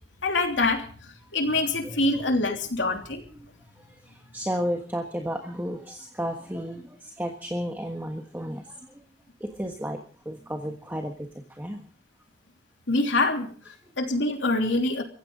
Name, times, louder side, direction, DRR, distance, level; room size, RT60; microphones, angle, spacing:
voice 1, 0.2-3.2 12.9-15.0, left 2 dB, 90° left, 4 dB, 3.1 m, -25 dB
voice 2, 3.3-9.0 9.4-11.9, equal, 10° right, 3 dB, 1.4 m, -33 dB
23.5 x 15.5 x 3.9 m, 0.43 s
head